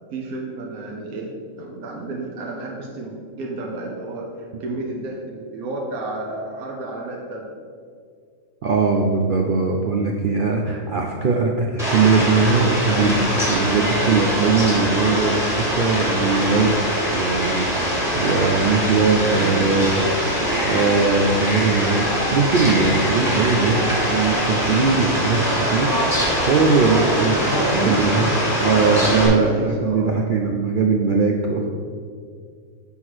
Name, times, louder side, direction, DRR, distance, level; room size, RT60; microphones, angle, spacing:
voice 1, 0.1-4.3 4.6-7.4 19.4-19.7 20.4-20.7 27.4-28.1 28.7-30.1, right 2 dB, 85° right, -1 dB, 1.3 m, -30 dB
voice 2, 8.6-16.8 17.1-20.0 20.6-25.9 26.4-27.4 27.8-28.2 28.6-31.7, right 4 dB, 70° right, 0 dB, 0.5 m, -20 dB
Fowl, 11.8-29.3, equal, ahead, 1.5 m, -22 dB
6.3 x 3.7 x 6.1 m, 2.1 s
omnidirectional pair, 1.5 m